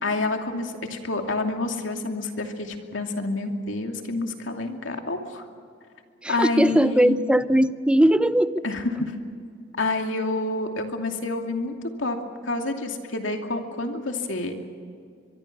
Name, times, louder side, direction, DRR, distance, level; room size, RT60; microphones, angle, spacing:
voice 1, 0.0-5.4 6.3-7.2 8.6-9.1 9.8-12.2 12.4-14.6, left 2 dB, 85° left, 2.7 m, -28 dB
voice 2, 6.2-8.6, right 1 dB, 5° right, 0.6 m, -20 dB
24.0 x 23.5 x 6.1 m
head